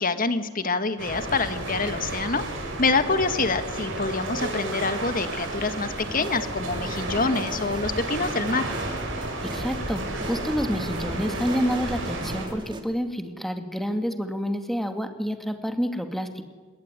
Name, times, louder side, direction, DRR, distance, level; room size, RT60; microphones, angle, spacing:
voice 1, 0.0-2.5 2.8-8.7, left 3 dB, 45° left, 9 dB, 1.9 m, -26 dB
sound 1, 1.0-12.5, right 2 dB, 75° right, 7.0 m, -32 dB
sound 2, 6.0-12.8, right 1 dB, 25° right, 2.5 m, -37 dB
voice 2, 9.5-16.4, equal, ahead, 6 dB, 2.3 m, -28 dB
26.5 x 22.0 x 9.8 m, 1.4 s
head